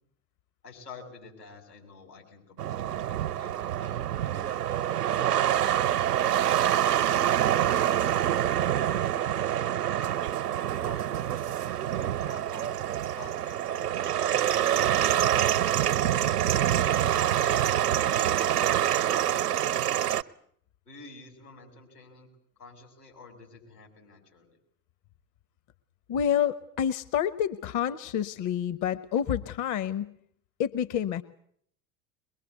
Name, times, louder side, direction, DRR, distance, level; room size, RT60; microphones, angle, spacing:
voice 1, 0.6-6.0 7.0-8.4 8.7-9.8 10.5-11.4 12.0-12.8 13.2-14.8 16.1-20.1 20.9-22.3 22.6-24.6, left 4 dB, 85° left, 2 dB, 7.2 m, -49 dB
sound 1, 2.6-20.2, right 11 dB, 80° right, 0.9 m, -26 dB
voice 2, 26.1-30.1 30.6-31.2, left 9 dB, 40° left, 14 dB, 1.1 m, -28 dB
23.0 x 22.0 x 8.3 m, 0.66 s
figure-of-eight pair, 70°, 46 cm